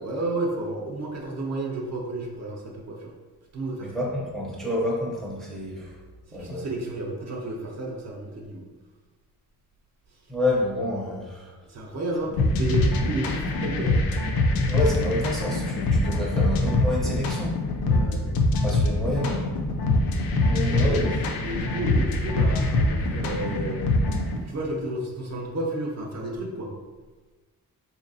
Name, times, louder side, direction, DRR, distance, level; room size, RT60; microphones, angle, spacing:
voice 1, 0.0-3.1 3.5-3.9 6.3-8.7 11.7-14.0 17.8-18.2 20.6-21.1 21.4-23.9 24.3-26.7, right 2 dB, 45° right, -1 dB, 0.6 m, -32 dB
voice 2, 3.8-6.0 6.3-6.7 10.3-11.5 12.3-12.4 14.7-17.5 18.6-19.5 20.4-21.2, left 1 dB, ahead, -4 dB, 0.5 m, -28 dB
sound 1, 12.4-24.4, left 2 dB, 70° left, 0.5 m, -24 dB
4.0 x 2.8 x 2.6 m, 1.2 s
wide cardioid pair, 155°, 37 cm